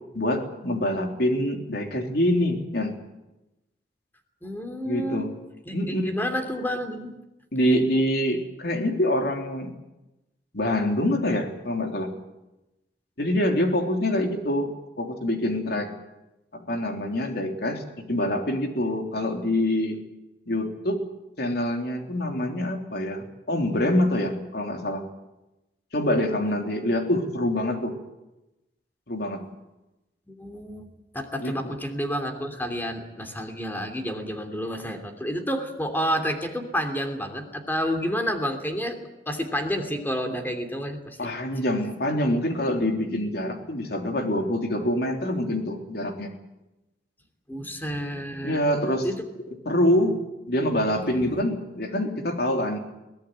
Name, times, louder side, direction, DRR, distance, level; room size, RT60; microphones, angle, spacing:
voice 1, 0.1-2.9 4.8-5.3 5.7-6.3 7.5-9.7 10.5-12.1 13.2-15.9 16.5-20.0 20.5-21.0 21.4-25.1 25.9-27.9 29.1-29.4 31.4-31.7 41.2-46.3 48.4-49.1 49.6-50.2 50.5-52.8, left 1 dB, 65° left, 3 dB, 3.5 m, -25 dB
voice 2, 4.4-5.3 5.7-7.2 30.3-30.9 31.1-39.0 39.3-41.3 47.5-48.6 49.0-49.2 50.9-51.4, equal, 10° left, 5 dB, 2.9 m, -30 dB
22.5 x 17.5 x 9.5 m, 0.97 s
head